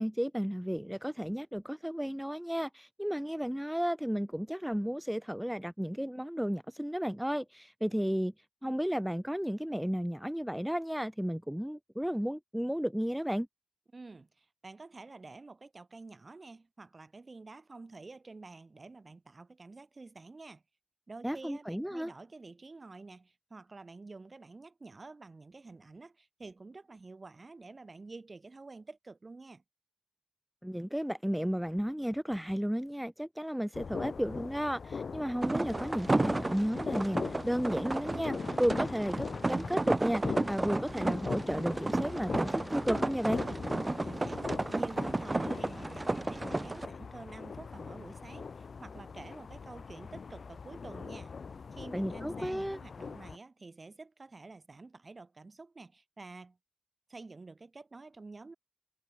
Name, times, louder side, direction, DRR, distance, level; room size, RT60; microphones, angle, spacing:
voice 1, 0.0-8.3 8.6-13.5 21.2-22.1 30.6-43.4 51.9-52.8, equal, 5° right, 0.8 m, -33 dB
voice 2, 13.9-20.6 21.1-29.6 44.0-51.3 51.7-56.6 57.1-58.5, right 3 dB, 55° right, 7.5 m, -49 dB
sound 1, 33.7-53.4, left 5 dB, 85° left, 1.6 m, -41 dB
sound 2, 35.4-46.9, right 2 dB, 35° right, 1.1 m, -33 dB
cardioid pair, 50°, 0 cm